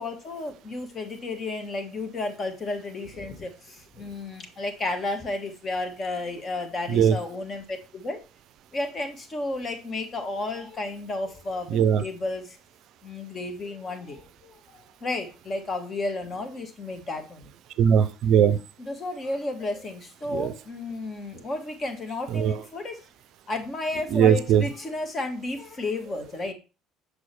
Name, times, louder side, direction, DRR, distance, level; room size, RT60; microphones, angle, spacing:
voice 1, 0.0-8.2 8.7-12.6 13.0-17.9 18.8-23.0 23.5-26.5, left 2 dB, 35° left, 6 dB, 1.4 m, -32 dB
voice 2, 11.7-12.0 17.8-18.6 20.3-20.5 22.3-22.6 24.1-24.6, right 8 dB, 55° right, 14 dB, 0.4 m, -19 dB
6.1 x 4.9 x 3.3 m, 0.30 s
figure-of-eight pair, 55°, 0 cm